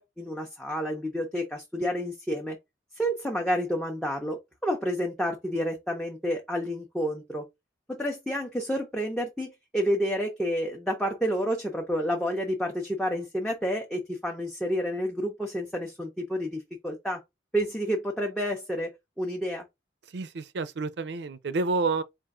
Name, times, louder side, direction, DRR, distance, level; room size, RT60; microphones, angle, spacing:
voice 1, 0.0-2.6 3.0-7.5 7.9-17.2 17.5-19.6, equal, 5° left, 0.6 m, -30 dB
voice 2, 20.1-22.0, right 3 dB, 70° right, 0.5 m, -29 dB
4.3 x 2.5 x 3.6 m
head